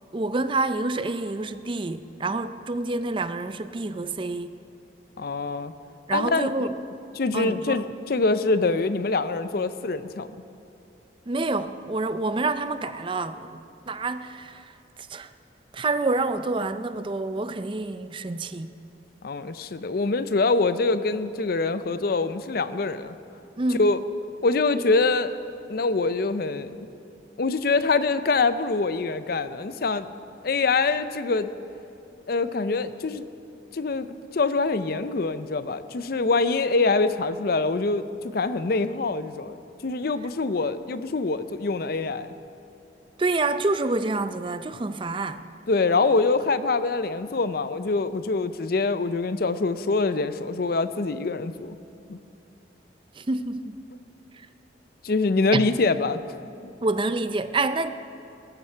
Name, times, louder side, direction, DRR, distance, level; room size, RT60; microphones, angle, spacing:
voice 1, 0.1-4.5 6.1-6.7 7.3-7.8 11.3-14.7 15.0-15.3 15.7-18.7 23.6-23.9 43.2-45.4 53.2-53.8 54.3-54.5 55.5-55.7 56.8-57.9, right 3 dB, 30° right, 0.5 m, -27 dB
voice 2, 5.2-5.7 6.1-6.7 7.2-10.3 19.2-23.1 23.8-24.0 24.4-25.4 25.7-26.9 27.4-30.1 30.4-31.5 32.3-33.2 33.7-34.1 34.3-42.3 45.7-51.8 52.1-52.2 55.0-56.2, left 3 dB, 55° left, 0.6 m, -24 dB
18.0 x 14.0 x 4.5 m
head